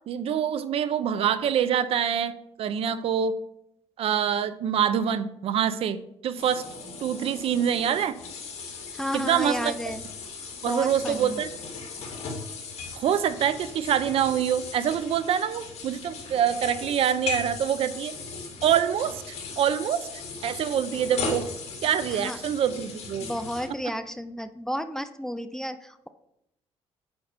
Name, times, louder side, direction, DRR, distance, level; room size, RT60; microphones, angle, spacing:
voice 1, 0.1-3.4 4.0-6.6 7.0-8.2 9.1-9.7 10.6-11.5 12.9-18.1 18.6-19.2 19.6-20.0 20.4-21.4 21.8-23.3, right 9 dB, 60° right, 13 dB, 0.6 m, -25 dB
sound 1, 6.4-23.7, left 5 dB, 70° left, 2.3 m, -38 dB
voice 2, 8.9-10.1 10.7-11.4 22.1-22.4 23.2-26.1, equal, 5° left, 11 dB, 0.4 m, -32 dB
8.8 x 5.5 x 5.0 m, 0.81 s
cardioid pair, 135°, 11 cm